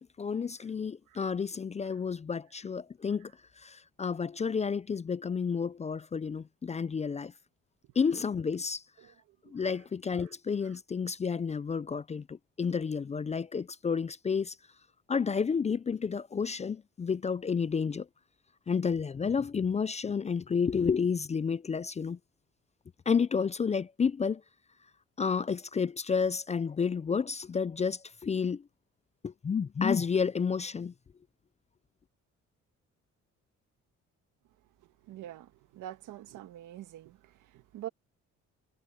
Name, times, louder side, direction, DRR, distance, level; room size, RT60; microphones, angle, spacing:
voice 1, 0.2-3.3 3.6-7.3 8.0-8.8 9.5-14.5 15.1-18.1 18.7-22.2 23.1-24.4 25.2-28.6 29.2-30.9, left 6 dB, 25° left, 0.4 m, -30 dB
voice 2, 35.1-37.2 37.7-37.9, right 12 dB, 85° right, 1.7 m, -44 dB
cardioid pair, 90°, 30 cm